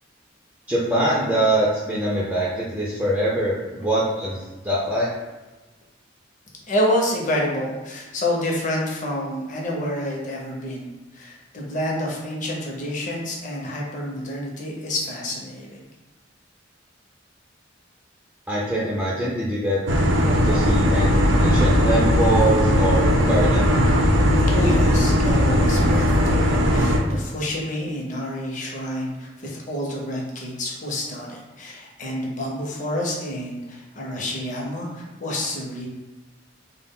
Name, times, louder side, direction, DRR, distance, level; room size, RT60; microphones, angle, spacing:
voice 1, 0.7-5.1 18.5-19.8 20.4-23.7, right 1 dB, 10° right, -7 dB, 0.3 m, -23 dB
voice 2, 6.7-15.9 24.5-35.9, left 1 dB, 40° left, -2 dB, 0.6 m, -28 dB
sound 1, 19.9-27.0, equal, 85° right, 0.4 m, -18 dB
2.2 x 2.1 x 3.6 m, 1.2 s
head